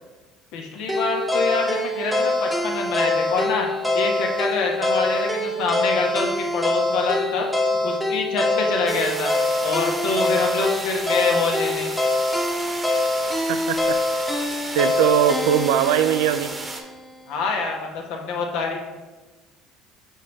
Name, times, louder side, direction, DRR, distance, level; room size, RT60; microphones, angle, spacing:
voice 1, 0.5-3.7 3.9-7.5 7.8-9.3 9.6-11.9 17.3-18.8, left 4 dB, 80° left, 1 dB, 1.1 m, -26 dB
sound 1, 0.9-17.0, left 2 dB, 5° left, 0.9 m, -24 dB
sound 2, 8.9-16.8, right 2 dB, 25° right, 0.9 m, -34 dB
voice 2, 13.5-14.0 14.7-16.5, right 9 dB, 90° right, 11 dB, 0.4 m, -20 dB
5.6 x 5.5 x 3.3 m, 1.2 s
supercardioid pair, 95°, 0 cm